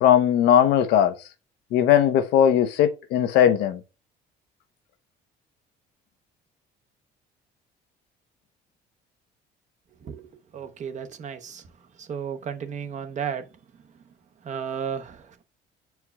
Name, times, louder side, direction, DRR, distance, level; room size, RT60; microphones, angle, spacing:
voice 1, 0.0-1.1 1.7-3.8, left 10 dB, 85° left, 0.8 m, -19 dB
voice 2, 10.5-11.6 12.0-13.4 14.4-15.4, right 7 dB, 45° right, 0.9 m, -33 dB
9.6 x 4.6 x 2.3 m
cardioid pair, 110°, 17 cm